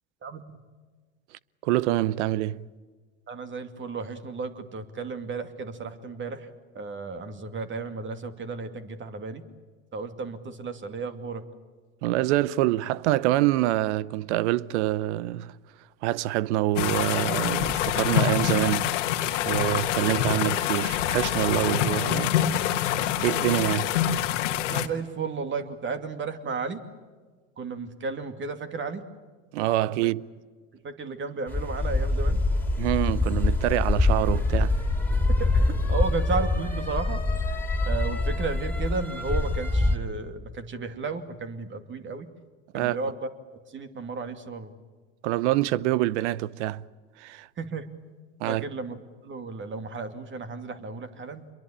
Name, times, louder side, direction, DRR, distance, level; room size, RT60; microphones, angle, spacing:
voice 1, 0.2-0.6 3.3-9.4 9.9-11.4 24.7-26.8 27.6-29.0 30.8-32.4 35.3-37.2 37.9-42.3 42.7-43.3 43.7-44.7 47.6-47.9 48.5-51.4, right 4 dB, 30° right, 2.6 m, -33 dB
voice 2, 1.6-2.6 12.0-15.5 16.0-19.2 19.4-22.3 23.2-24.0 29.5-30.2 32.8-34.8 42.7-43.0 45.2-46.8 47.2-47.5 48.4-48.6, right 15 dB, 65° right, 0.8 m, -26 dB
sound 1, 16.8-24.9, left 11 dB, 75° left, 1.6 m, -26 dB
sound 2, 31.5-40.0, left 2 dB, 5° left, 3.5 m, -25 dB
27.0 x 22.5 x 8.8 m
hypercardioid pair, 85°, 37 cm